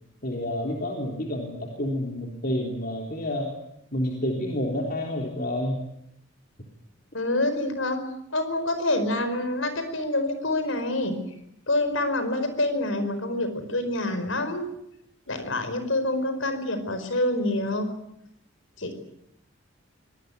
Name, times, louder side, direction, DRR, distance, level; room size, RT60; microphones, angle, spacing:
voice 1, 0.2-3.6 3.9-5.8, left 1 dB, 45° left, 0 dB, 3.6 m, -29 dB
voice 2, 7.1-8.0 8.3-11.2 11.7-14.7 15.3-17.9 18.8-18.9, left 1 dB, 75° left, 10 dB, 4.8 m, -26 dB
24.5 x 19.0 x 9.5 m, 0.79 s
head